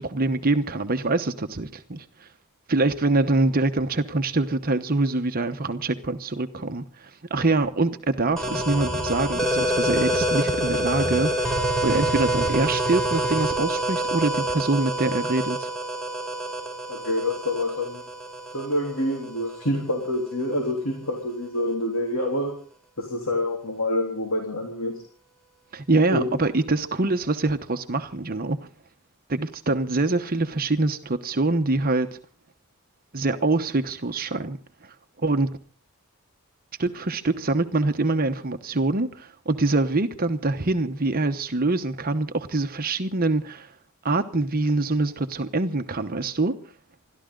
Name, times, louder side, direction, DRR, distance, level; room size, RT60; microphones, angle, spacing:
voice 1, 0.0-2.3 2.7-15.7 25.7-28.6 29.3-32.2 33.1-35.5 36.8-43.7 44.0-46.5, right 2 dB, 45° right, 1.0 m, -25 dB
sound 1, 8.3-14.3, right 1 dB, 45° left, 5.9 m, -40 dB
sound 2, 8.4-19.8, right 1 dB, ahead, 4.1 m, -27 dB
voice 2, 16.9-18.0 18.5-22.6 23.0-25.0 26.1-26.3, left 1 dB, 70° left, 3.5 m, -27 dB
28.5 x 13.0 x 3.9 m
head